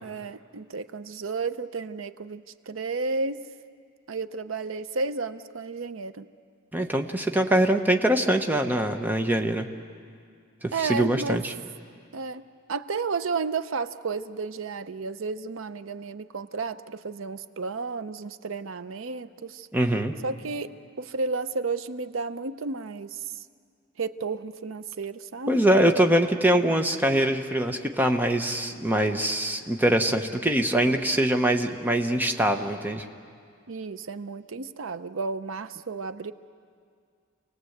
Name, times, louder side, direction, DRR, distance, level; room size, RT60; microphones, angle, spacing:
voice 1, 0.0-3.4 4.1-6.3 10.7-11.4 12.1-12.4 12.7-19.7 20.2-20.7 21.0-23.2 24.0-25.5 33.7-36.3, right 4 dB, 90° right, 12 dB, 0.6 m, -32 dB
voice 2, 6.7-9.7 10.8-11.5 19.7-20.1 25.5-33.0, right 1 dB, 10° right, 5 dB, 1.0 m, -23 dB
27.5 x 19.0 x 8.0 m, 2.2 s
head